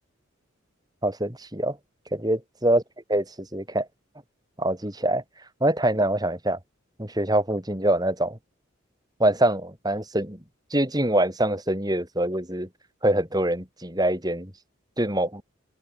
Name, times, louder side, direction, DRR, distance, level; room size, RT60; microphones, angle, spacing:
voice 1, 1.0-1.8 2.1-2.8 3.1-3.9 4.6-5.2 5.6-6.6 7.0-8.4 9.2-10.4 10.7-12.7 13.0-14.5 15.0-15.4, right 1 dB, 20° right, 4.6 m, -24 dB
open air
head